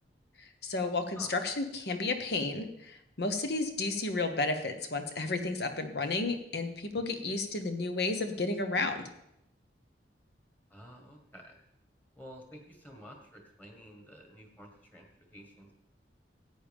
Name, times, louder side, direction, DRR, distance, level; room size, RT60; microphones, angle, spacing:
voice 1, 0.4-9.1, left 3 dB, 60° left, 7 dB, 1.1 m, -32 dB
voice 2, 10.7-11.6 12.2-15.7, equal, 10° left, 2 dB, 1.7 m, -51 dB
14.0 x 9.0 x 3.6 m, 0.79 s
head